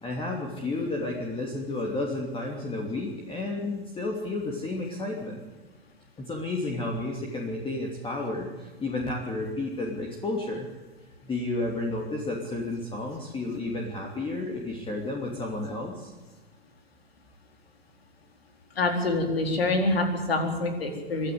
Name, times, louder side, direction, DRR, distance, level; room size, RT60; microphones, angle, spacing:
voice 1, 0.0-5.4 6.2-10.7 11.2-16.1, left 2 dB, 15° left, 0 dB, 3.0 m, -32 dB
voice 2, 18.8-21.3, left 2 dB, 75° left, 4 dB, 4.3 m, -26 dB
24.0 x 13.5 x 8.1 m, 1.3 s
figure-of-eight pair, 100°, 30 cm